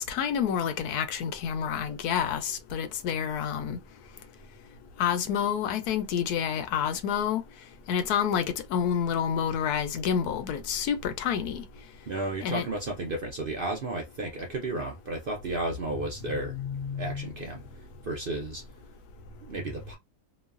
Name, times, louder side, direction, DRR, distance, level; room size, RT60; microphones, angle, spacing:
voice 1, 0.0-3.8 5.0-7.4 7.9-11.6 12.4-12.7 16.3-17.3, left 8 dB, 85° left, 1.1 m, -29 dB
voice 2, 12.1-17.6 18.0-18.6 19.4-20.0, right 2 dB, 55° right, 0.6 m, -33 dB
3.0 x 2.1 x 2.4 m
omnidirectional pair, 1.6 m